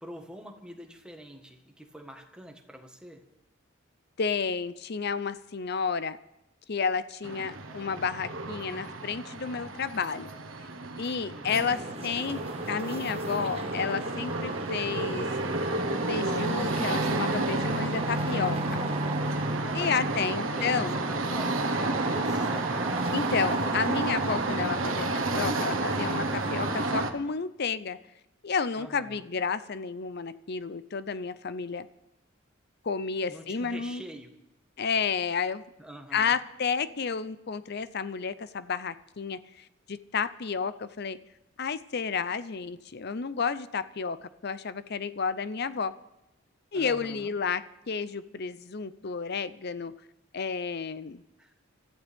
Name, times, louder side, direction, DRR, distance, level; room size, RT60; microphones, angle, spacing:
voice 1, 0.0-3.2 11.3-11.9 19.6-23.3 28.8-29.3 33.3-34.3 35.8-36.4 46.7-47.3 51.4-51.5, right 1 dB, 5° right, 3 dB, 1.5 m, -45 dB
voice 2, 4.2-6.2 6.7-10.3 11.0-12.4 12.7-15.3 16.1-18.8 19.7-21.0 23.1-28.0 28.4-31.9 32.8-34.0 34.8-35.6 36.1-39.4 39.9-41.2 41.6-45.9 46.7-49.9 50.3-51.2, left 5 dB, 55° left, 14 dB, 0.6 m, -31 dB
sound 1, 7.2-27.1, right 2 dB, 85° right, 1.3 m, -31 dB
sound 2, 11.5-27.1, right 2 dB, 30° right, 1.4 m, -36 dB
25.0 x 14.0 x 3.6 m, 0.90 s
head